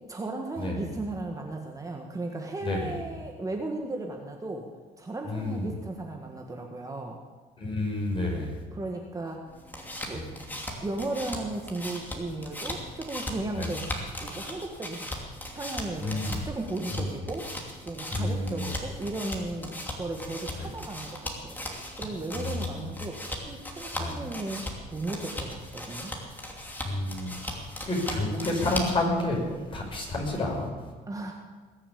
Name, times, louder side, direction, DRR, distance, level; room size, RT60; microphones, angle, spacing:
voice 1, 0.1-4.7 5.0-7.2 8.7-9.5 10.1-10.3 10.8-13.8 14.2-15.2 15.5-17.5 17.8-21.6 22.0-24.6 24.9-26.1 29.5-29.7 31.1-31.3, right 2 dB, 20° right, 2 dB, 1.6 m, -35 dB
voice 2, 2.6-2.9 5.2-5.7 7.6-8.5 10.1-10.2 13.6-13.8 16.0-16.5 16.9-17.1 18.1-18.7 20.6-20.7 22.3-22.8 23.9-24.2 26.8-29.4 29.7-30.7, left 2 dB, 30° left, -1 dB, 5.7 m, -30 dB
sound 1, 9.5-29.1, left 1 dB, 10° left, 2.8 m, -38 dB
20.5 x 7.3 x 8.5 m, 1.4 s
cardioid pair, 110°, 17 cm